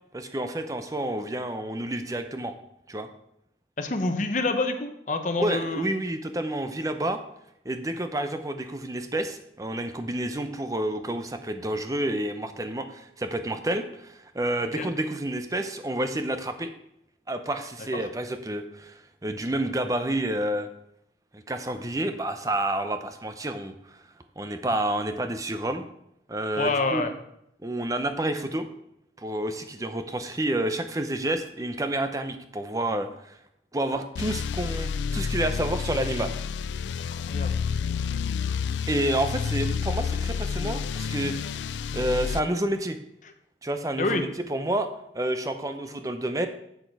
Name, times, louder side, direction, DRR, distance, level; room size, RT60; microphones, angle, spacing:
voice 1, 0.1-2.5 2.9-3.1 5.4-7.2 7.6-16.7 17.3-20.7 21.3-24.0 24.4-25.9 26.3-27.1 27.6-28.7 29.2-33.4 33.7-36.3 38.9-43.0 43.6-46.5, right 1 dB, 20° right, 8 dB, 0.6 m, -29 dB
voice 2, 3.8-5.9 14.8-14.9 26.6-27.1 37.1-37.6 44.0-44.2, left 3 dB, 45° left, 7 dB, 0.8 m, -27 dB
sound 1, 34.1-42.4, left 6 dB, 80° left, 0.3 m, -29 dB
8.0 x 6.5 x 4.6 m, 0.79 s
head